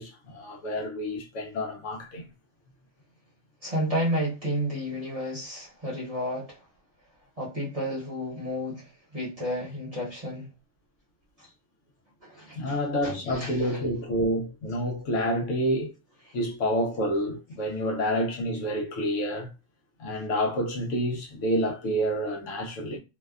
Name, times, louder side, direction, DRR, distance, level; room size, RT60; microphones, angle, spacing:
voice 1, 0.0-2.3 12.5-15.9 16.3-19.5 20.0-23.0, equal, 70° left, 0.9 m, -28 dB
voice 2, 3.6-6.6 7.4-8.9 9.1-10.5 11.4-11.5 12.2-13.8 16.2-16.3, equal, 30° right, 0.8 m, -32 dB
2.7 x 2.1 x 2.3 m
omnidirectional pair, 1.4 m